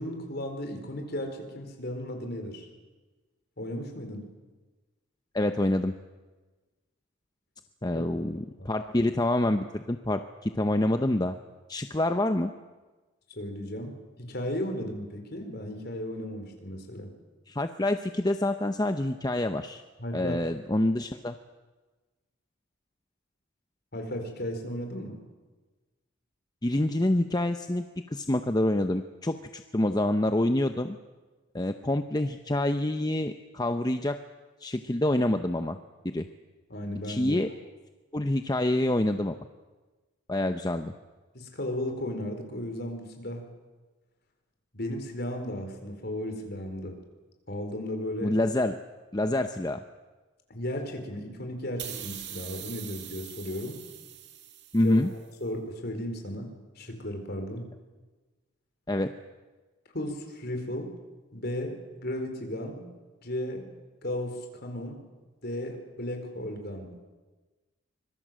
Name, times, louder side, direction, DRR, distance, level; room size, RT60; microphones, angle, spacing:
voice 1, 0.0-2.7 3.6-4.2 7.8-8.0 8.6-8.7 13.3-17.1 20.0-20.4 23.9-25.2 36.7-37.4 41.3-43.5 44.7-47.0 47.5-48.4 50.5-53.8 54.8-57.7 59.9-60.9 61.3-62.8 63.2-63.7 64.0-65.0 65.4-67.0, left 1 dB, 50° left, 4 dB, 4.3 m, -35 dB
voice 2, 5.3-6.0 7.8-11.3 11.7-12.5 17.5-19.8 20.1-21.3 26.6-31.0 31.5-34.2 34.6-35.8 36.0-36.3 37.1-37.5 38.1-39.4 40.3-40.9 48.2-48.8 49.1-49.8 54.7-55.1 58.9-59.1, left 1 dB, 20° left, 7 dB, 0.7 m, -27 dB
sound 1, 51.8-55.2, right 10 dB, 55° right, 2.5 m, -42 dB
25.0 x 22.0 x 7.6 m, 1.2 s
head